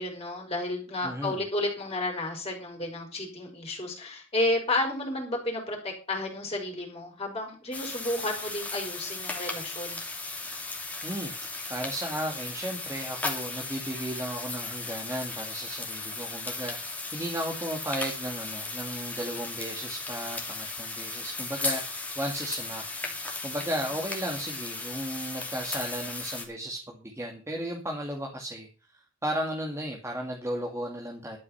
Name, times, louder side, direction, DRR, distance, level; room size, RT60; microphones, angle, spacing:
voice 1, 0.0-10.0, left 1 dB, 25° left, 1 dB, 4.3 m, -32 dB
voice 2, 1.0-1.4 11.0-28.7 28.9-31.4, right 1 dB, 15° right, 0 dB, 2.0 m, -35 dB
sound 1, 7.7-26.4, left 3 dB, 5° left, 2.8 m, -36 dB
12.0 x 9.4 x 5.7 m, 0.34 s
head